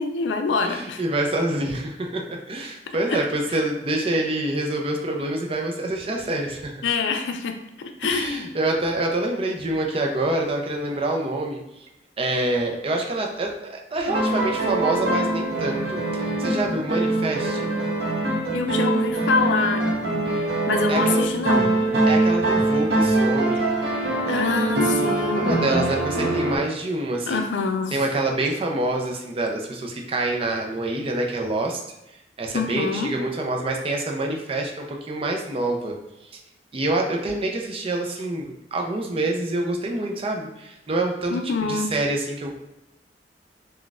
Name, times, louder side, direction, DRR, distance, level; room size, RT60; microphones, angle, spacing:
voice 1, 0.0-1.0 3.1-3.2 6.8-8.5 18.5-19.8 20.3-21.8 24.3-25.6 27.3-28.0 32.5-33.1 41.3-41.9, left 4 dB, 80° left, 6 dB, 0.4 m, -25 dB
voice 2, 0.6-6.7 8.0-11.6 12.2-17.7 20.9-21.3 22.1-23.7 25.3-27.5 27.9-31.8 32.4-36.0 36.7-42.6, right 2 dB, 30° right, 1 dB, 0.4 m, -26 dB
sound 1, 14.1-26.6, right 2 dB, 60° right, 0.8 m, -23 dB
3.9 x 2.2 x 2.3 m, 0.89 s
head